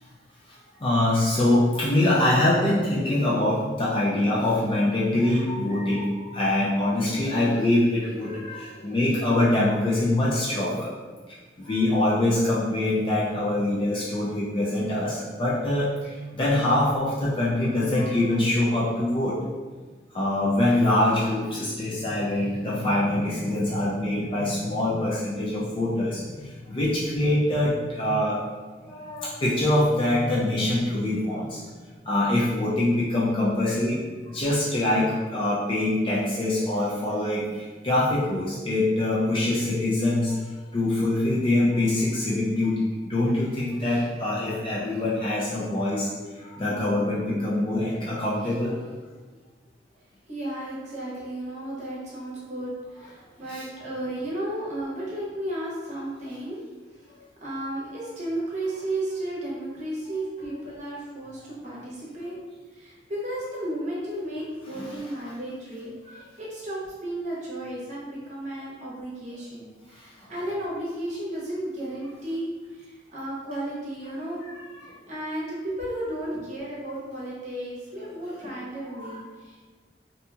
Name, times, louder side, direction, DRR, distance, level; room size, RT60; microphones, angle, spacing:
voice 1, 0.8-10.9 11.6-19.4 20.1-28.4 28.8-31.6 32.1-40.4 40.7-42.7 43.1-46.1 46.4-48.8 53.5-53.6 64.8-64.9 66.1-66.2 70.2-70.3 74.8-74.9 78.4-78.5 78.9-79.2, left 1 dB, 30° left, -7 dB, 0.4 m, -24 dB
voice 2, 50.3-56.6 57.4-62.3 62.7-74.5 75.1-79.7, right 1 dB, 45° right, -6 dB, 0.8 m, -34 dB
2.8 x 2.6 x 2.3 m, 1.3 s
head